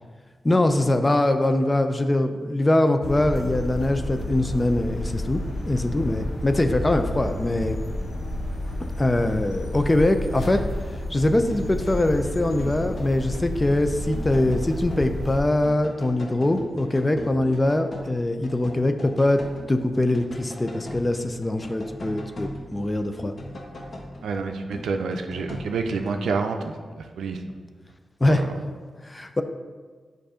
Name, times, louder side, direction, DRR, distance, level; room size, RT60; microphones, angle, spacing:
voice 1, 0.4-7.8 9.0-10.6 11.1-19.4 19.7-23.3 28.2-28.4 29.0-29.4, left 1 dB, 25° left, 8 dB, 0.5 m, -22 dB
sound 1, 3.0-15.4, left 1 dB, 80° left, 1.1 m, -31 dB
sound 2, 11.5-12.1 12.4-13.5 13.9-15.4 15.6-26.2, left 1 dB, 55° left, 1.0 m, -40 dB
voice 2, 24.2-27.4 28.2-28.6, right 4 dB, 90° right, 5 dB, 0.4 m, -28 dB
7.7 x 2.6 x 4.9 m, 1.5 s
cardioid pair, 55°, 0 cm